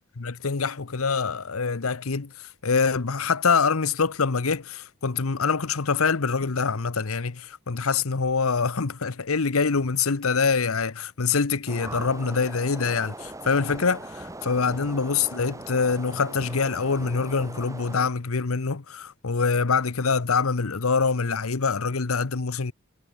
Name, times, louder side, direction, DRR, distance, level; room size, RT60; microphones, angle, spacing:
voice 1, 0.2-22.7, left 5 dB, 85° left, 0.9 m, -25 dB
sound 1, 11.7-18.1, right 2 dB, 15° right, 2.7 m, -40 dB
head